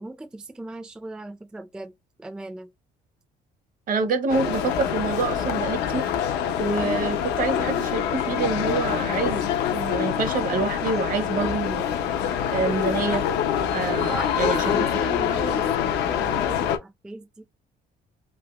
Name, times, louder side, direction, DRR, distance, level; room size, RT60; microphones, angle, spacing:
voice 1, 0.0-1.9 2.2-2.7 6.6-6.9 14.0-17.4, right 2 dB, 5° right, 0.3 m, -37 dB
voice 2, 3.9-6.1 6.6-11.8 12.2-13.2 13.7-14.8, right 4 dB, 55° right, 0.8 m, -27 dB
sound 1, 4.3-16.8, left 9 dB, 90° left, 0.6 m, -25 dB
3.3 x 2.7 x 2.3 m
cardioid pair, 110°, 17 cm